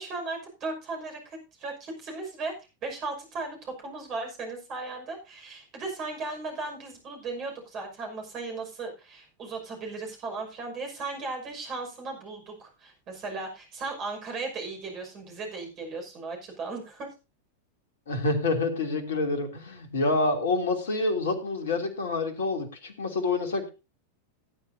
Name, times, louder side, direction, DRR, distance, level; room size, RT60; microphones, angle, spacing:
voice 1, 0.0-2.5 2.8-17.1, right 3 dB, 35° right, 3 dB, 5.8 m, -36 dB
voice 2, 18.1-23.7, left 2 dB, 60° left, 6 dB, 2.9 m, -27 dB
18.5 x 10.5 x 2.7 m, 0.29 s
figure-of-eight pair, 90°, 0 cm